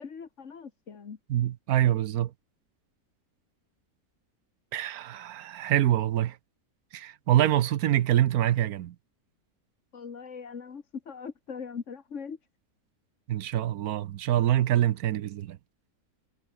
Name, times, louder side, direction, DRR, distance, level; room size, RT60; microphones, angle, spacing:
voice 1, 0.0-1.2 9.9-12.4, left 6 dB, 55° left, 1.8 m, -40 dB
voice 2, 1.3-2.3 4.7-6.4 6.9-8.9 13.3-15.6, right 12 dB, 80° right, 1.2 m, -25 dB
omnidirectional pair, 1.6 m